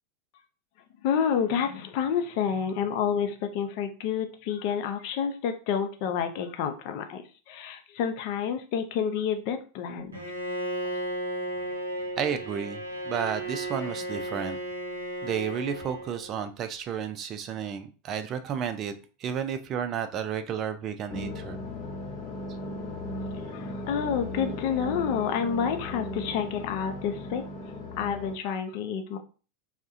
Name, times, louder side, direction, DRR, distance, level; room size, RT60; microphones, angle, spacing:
voice 1, 1.0-7.2 7.5-10.1 23.5-27.4 28.0-29.2, left 7 dB, 55° left, 7 dB, 0.4 m, -29 dB
Bowed string instrument, 10.1-16.4, right 1 dB, 85° right, 0.6 m, -34 dB
voice 2, 12.2-14.6 15.2-18.9 19.2-21.6, right 8 dB, 40° right, 8 dB, 0.3 m, -32 dB
sound 1, 21.1-28.4, left 1 dB, 35° left, 0.8 m, -37 dB
2.2 x 2.1 x 2.6 m, 0.35 s
hypercardioid pair, 90°, 0 cm